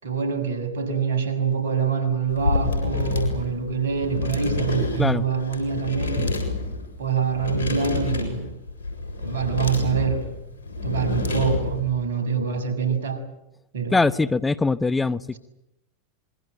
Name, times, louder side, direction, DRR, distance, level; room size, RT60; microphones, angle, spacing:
voice 1, 0.0-6.4 7.0-8.5 9.2-10.3 10.8-13.2 13.7-14.0, right 6 dB, 75° right, 9 dB, 6.1 m, -25 dB
sound 1, 2.3-11.9, left 3 dB, 80° left, 7.3 m, -28 dB
voice 2, 13.9-15.4, left 3 dB, 15° left, 15 dB, 0.9 m, -22 dB
26.5 x 22.5 x 9.2 m, 0.88 s
hypercardioid pair, 90°, 0 cm